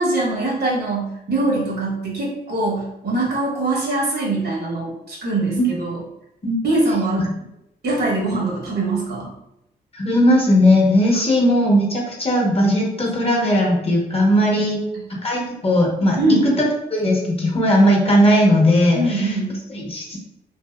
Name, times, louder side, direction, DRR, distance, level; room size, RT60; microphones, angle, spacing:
voice 1, 0.0-6.0 6.6-7.3 7.8-9.3 14.9-15.0 16.2-16.5 18.9-19.6, right 2 dB, 65° right, -3 dB, 1.0 m, -22 dB
voice 2, 9.9-14.8 15.2-16.2 16.6-16.7 16.9-19.3 19.7-20.2, equal, 30° left, -2 dB, 1.0 m, -17 dB
2.7 x 2.7 x 2.3 m, 0.83 s
supercardioid pair, 55°, 19 cm